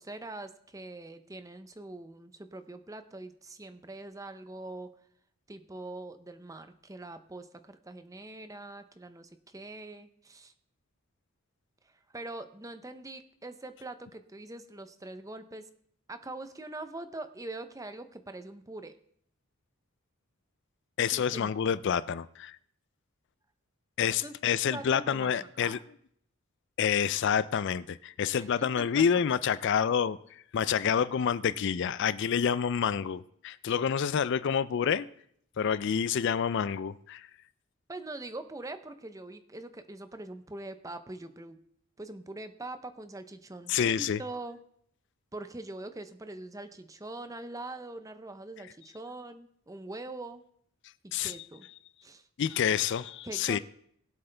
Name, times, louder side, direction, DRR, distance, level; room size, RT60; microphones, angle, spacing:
voice 1, 0.0-4.9 5.5-10.5 12.1-15.6 16.1-18.9 21.1-21.7 24.2-24.3 24.7-25.3 25.6-25.8 28.3-29.1 37.9-41.6 42.0-44.6 45.3-50.4 51.0-51.7 52.0-52.3 53.2-53.6, right 2 dB, 15° right, 9 dB, 0.6 m, -43 dB
voice 2, 21.0-22.6 24.0-25.8 26.8-30.2 30.5-35.1 35.6-37.3 43.7-44.2 51.1-51.4 52.4-53.6, left 7 dB, 55° left, 16 dB, 0.4 m, -28 dB
21.0 x 7.9 x 3.4 m, 0.67 s
head